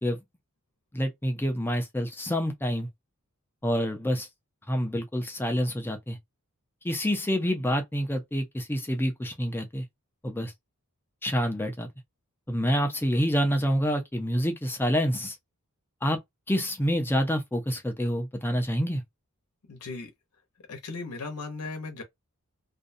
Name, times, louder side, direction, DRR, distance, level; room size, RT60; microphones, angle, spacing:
voice 1, 0.9-2.9 3.6-4.3 4.7-6.2 6.8-9.8 10.2-10.5 11.2-11.9 12.5-15.4 16.0-16.2 16.5-19.0, equal, 10° left, 0.5 m, -27 dB
voice 2, 19.7-20.1 20.7-22.0, left 3 dB, 90° left, 0.7 m, -37 dB
2.5 x 2.2 x 2.5 m
head